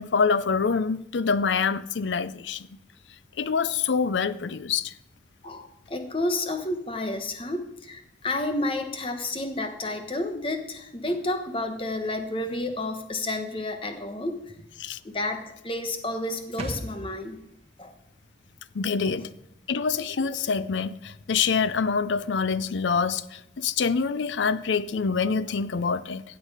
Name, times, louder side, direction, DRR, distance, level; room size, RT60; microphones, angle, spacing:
voice 1, 0.0-2.7 3.4-4.9 14.8-15.0 18.8-19.3 19.7-26.2, left 5 dB, 85° left, 0.5 m, -26 dB
voice 2, 5.4-14.4 15.0-17.4 17.8-17.9 19.0-19.2, left 2 dB, 30° left, 1.1 m, -30 dB
sound 1, 16.6-20.1 20.4-20.5, right 1 dB, 35° right, 1.3 m, -41 dB
15.5 x 8.1 x 4.9 m
head